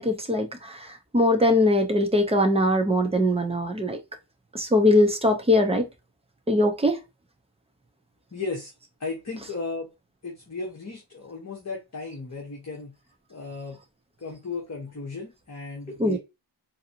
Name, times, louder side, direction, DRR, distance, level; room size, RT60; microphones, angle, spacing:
voice 1, 0.0-4.0 4.5-5.9 6.5-7.0 16.0-16.2, left 1 dB, 10° right, 0.7 m, -21 dB
voice 2, 8.3-8.7 9.0-9.9 10.2-12.9 13.3-13.8 14.2-16.2, left 3 dB, 35° left, 1.1 m, -35 dB
3.9 x 2.7 x 2.8 m
wide cardioid pair, 120°, 48 cm